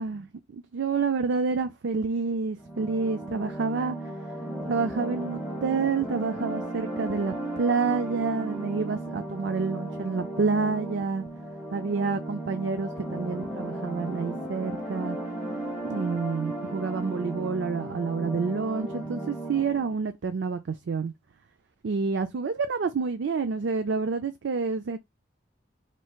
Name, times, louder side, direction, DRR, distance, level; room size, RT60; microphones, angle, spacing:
voice 1, 0.0-4.0 4.7-11.3 11.7-15.2 15.8-21.1 21.8-25.0, right 4 dB, 70° right, 0.4 m, -28 dB
sound 1, 2.6-19.9, right 1 dB, 5° right, 1.2 m, -35 dB
4.3 x 3.2 x 2.3 m
head